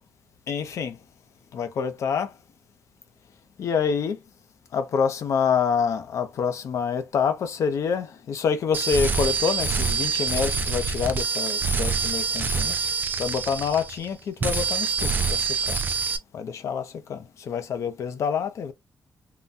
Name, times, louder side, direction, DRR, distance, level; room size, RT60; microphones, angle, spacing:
voice 1, 0.5-0.9 1.5-2.3 3.6-4.2 4.7-12.7 13.2-15.4 15.7-15.8 16.3-16.8 17.1-17.2 17.5-18.7, left 6 dB, 70° left, 0.7 m, -26 dB
sound 1, 8.7-14.1 14.4-16.2, right 5 dB, 35° right, 0.5 m, -26 dB
3.8 x 2.2 x 2.5 m
wide cardioid pair, 135°, 5 cm